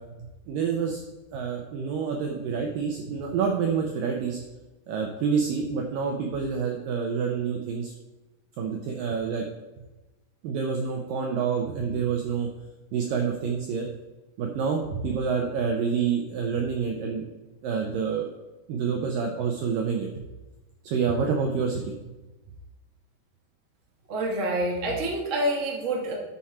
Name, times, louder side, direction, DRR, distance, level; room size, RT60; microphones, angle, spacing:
voice 1, 0.2-1.0 1.3-4.4 4.9-7.9 8.6-9.4 10.4-12.5 12.9-13.9 14.4-17.3 17.6-18.3 18.7-20.2 20.8-22.0, right 6 dB, 80° right, 2 dB, 2.0 m, -28 dB
voice 2, 24.1-26.1, right 1 dB, 45° right, -2 dB, 0.9 m, -27 dB
11.5 x 6.3 x 4.3 m, 1.1 s
omnidirectional pair, 5.0 m